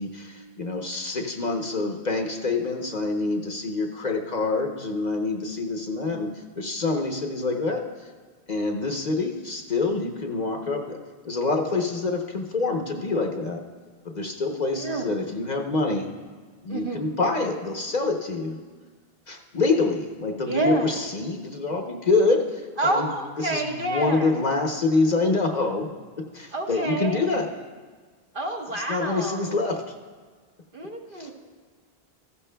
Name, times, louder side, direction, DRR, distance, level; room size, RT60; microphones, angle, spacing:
voice 1, 0.0-6.3 6.6-7.9 8.5-11.0 11.2-13.6 14.0-16.1 16.6-18.6 19.3-23.1 23.4-25.9 26.3-27.5 28.7-29.8 31.1-31.3, left 3 dB, 45° left, 2 dB, 0.9 m, -26 dB
voice 2, 14.8-15.2 16.7-17.0 20.5-20.9 22.8-24.3 26.5-27.2 28.3-29.5 30.7-31.3, right 1 dB, 55° right, 0 dB, 1.3 m, -28 dB
14.5 x 14.0 x 2.2 m, 1.5 s
omnidirectional pair, 1.0 m